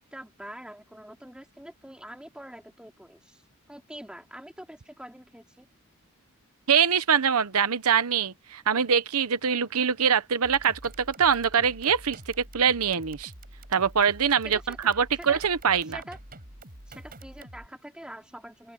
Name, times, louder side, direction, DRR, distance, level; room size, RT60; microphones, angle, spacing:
voice 1, 0.0-3.4 3.7-5.7 14.4-14.8 15.2-15.4 15.9-16.2 16.9-18.7, right 1 dB, 5° right, 2.8 m, -44 dB
voice 2, 6.7-12.2 12.5-13.3 13.7-16.0, right 7 dB, 80° right, 0.9 m, -24 dB
sound 1, 10.4-17.7, right 1 dB, 40° right, 7.6 m, -47 dB
open air
head